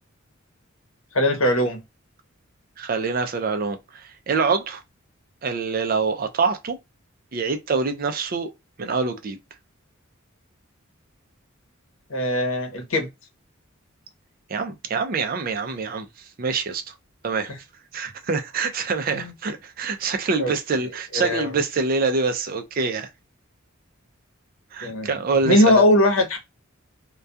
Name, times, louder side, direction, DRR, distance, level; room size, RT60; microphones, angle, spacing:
voice 1, 1.1-1.8 12.1-13.1 17.5-17.6 19.1-19.3 20.4-20.5 21.1-21.5 24.8-25.1 25.4-26.4, left 1 dB, 75° left, 0.8 m, -20 dB
voice 2, 2.8-4.8 5.4-6.8 7.3-8.5 8.8-9.4 14.5-16.1 16.4-16.9 17.2-17.5 17.9-23.1 24.7-25.9, right 4 dB, 45° right, 0.4 m, -25 dB
2.3 x 2.2 x 2.5 m
head